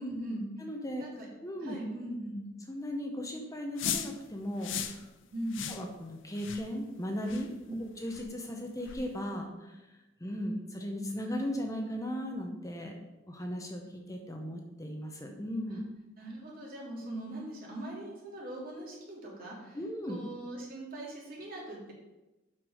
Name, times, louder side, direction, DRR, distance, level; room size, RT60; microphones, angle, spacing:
voice 1, 0.0-0.4 1.0-1.3 1.6-2.4 5.3-5.6 7.7-7.8 15.7-15.8 16.2-19.8 20.1-21.9, right 1 dB, 50° right, -4 dB, 3.0 m, -40 dB
voice 2, 0.6-1.1 1.4-1.8 2.7-5.1 5.7-7.5 8.0-9.8 10.2-12.9 13.3-15.8 19.7-20.2, equal, 15° left, 2 dB, 0.8 m, -37 dB
sound 1, 3.8-4.1 4.6-5.0 5.5-5.8 6.4-6.6 7.3-7.5 8.1-8.2 8.9-9.0, left 8 dB, 80° left, 0.7 m, -36 dB
7.7 x 5.9 x 5.0 m, 1.1 s
head